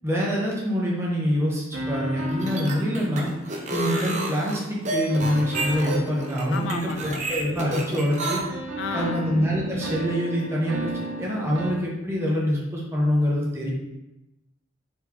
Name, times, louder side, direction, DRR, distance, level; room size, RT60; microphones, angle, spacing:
voice 1, 0.0-8.4 8.9-10.9 11.2-13.7, equal, 15° right, -4 dB, 0.8 m, -25 dB
sound 1, 1.7-4.4 5.1-8.1 8.5-11.7, right 1 dB, 80° right, 0.5 m, -34 dB
sound 2, 2.3-8.4, right 2 dB, 35° right, 0.5 m, -30 dB
voice 2, 6.5-7.3 8.8-9.2, left 5 dB, 65° left, 8 dB, 0.3 m, -32 dB
4.0 x 3.5 x 2.9 m, 0.96 s
head